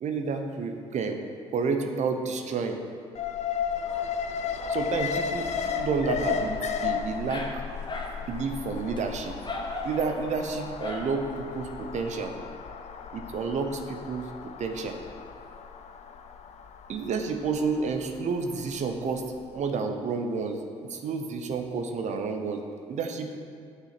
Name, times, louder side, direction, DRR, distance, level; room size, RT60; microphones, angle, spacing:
voice 1, 0.0-1.2 1.5-2.8 4.7-5.5 5.8-7.6 8.3-9.3 9.8-12.3 13.1-14.3 14.6-15.0 16.9-19.2 19.5-20.6 20.9-22.6 22.9-23.4, right 4 dB, 55° right, 5 dB, 0.9 m, -30 dB
Alarm, 3.1-19.3 19.6-19.7, left 7 dB, 50° left, 0.7 m, -34 dB
Dog, 3.7-11.9, left 2 dB, 30° left, 1.5 m, -41 dB
7.3 x 6.6 x 6.0 m, 2.3 s
hypercardioid pair, 50°, 15 cm